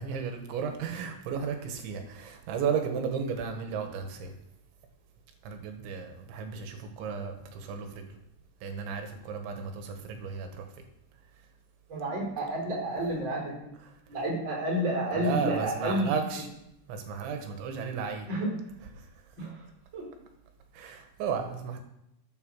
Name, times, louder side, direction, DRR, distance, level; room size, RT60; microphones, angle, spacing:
voice 1, 0.0-4.3 5.4-8.0 8.6-10.7 15.1-16.5 16.9-18.3 19.0-19.1 20.7-21.8, right 6 dB, 80° right, 5 dB, 3.8 m, -34 dB
voice 2, 11.9-13.7 14.1-16.1 18.3-18.5 19.4-19.6 19.9-20.0, right 1 dB, 25° right, -2 dB, 4.4 m, -30 dB
13.0 x 8.4 x 6.4 m, 0.80 s
omnidirectional pair, 5.2 m